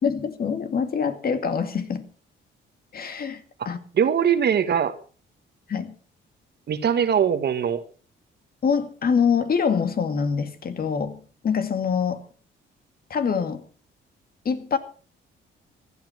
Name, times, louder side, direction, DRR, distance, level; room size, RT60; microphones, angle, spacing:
voice 1, 0.0-2.1 2.9-3.8 5.7-5.9 8.6-12.3 13.1-13.6 14.4-14.8, left 6 dB, 50° left, 2.3 m, -25 dB
voice 2, 3.9-4.9 6.7-7.8, right 8 dB, 55° right, 1.5 m, -21 dB
15.5 x 12.0 x 6.0 m
cardioid pair, 90°, 20 cm